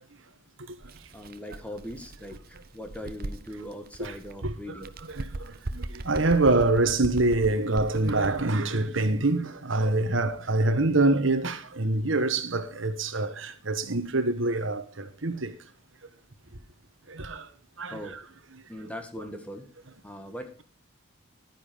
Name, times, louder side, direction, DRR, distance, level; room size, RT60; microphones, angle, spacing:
Bird, 0.8-4.4 4.8-8.6, right 2 dB, 45° right, 0.8 m, -39 dB
voice 1, 1.1-4.9 8.8-9.0 17.9-18.2 18.7-19.7 20.0-20.6, equal, 5° left, 1.6 m, -40 dB
voice 2, 4.4-15.5 17.1-17.5 17.8-18.2, right 2 dB, 70° right, 1.4 m, -26 dB
12.0 x 9.9 x 5.1 m
head